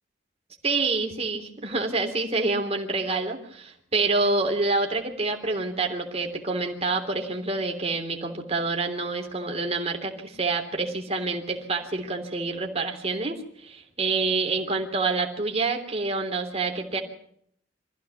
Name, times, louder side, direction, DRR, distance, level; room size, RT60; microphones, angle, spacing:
voice 1, 0.6-17.0, right 3 dB, 35° right, 3 dB, 3.4 m, -27 dB
24.5 x 15.0 x 7.2 m, 0.68 s
head